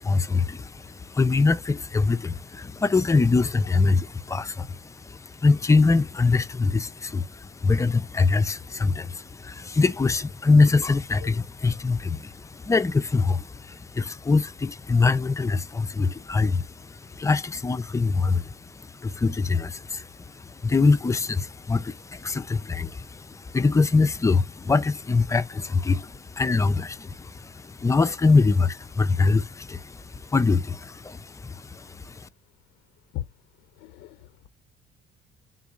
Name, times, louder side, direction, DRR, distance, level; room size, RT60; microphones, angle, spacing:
voice 1, 0.0-32.3, left 4 dB, 20° left, 0.5 m, -24 dB
voice 2, 33.8-34.5, left 14 dB, 85° left, 0.5 m, -36 dB
11.0 x 3.8 x 2.5 m
cardioid pair, 110°, 17 cm